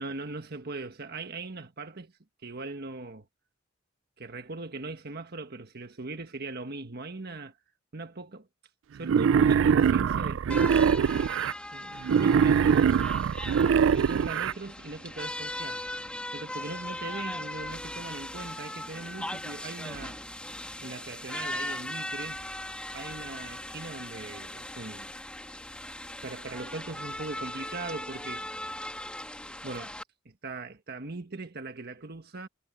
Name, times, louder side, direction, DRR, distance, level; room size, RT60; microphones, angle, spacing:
voice 1, 0.0-2.1 2.4-3.3 4.2-7.5 7.9-8.5 8.9-11.1 11.7-12.9 13.7-15.8 16.3-20.2 20.8-22.4 22.9-25.1 26.2-28.5 29.6-29.9 30.2-32.5, right 3 dB, 55° right, 1.4 m, -40 dB
Wild animals, 9.0-11.5 12.0-14.5, right 7 dB, 70° right, 0.3 m, -23 dB
sound 1, 10.5-30.0, left 1 dB, 5° left, 1.6 m, -39 dB
head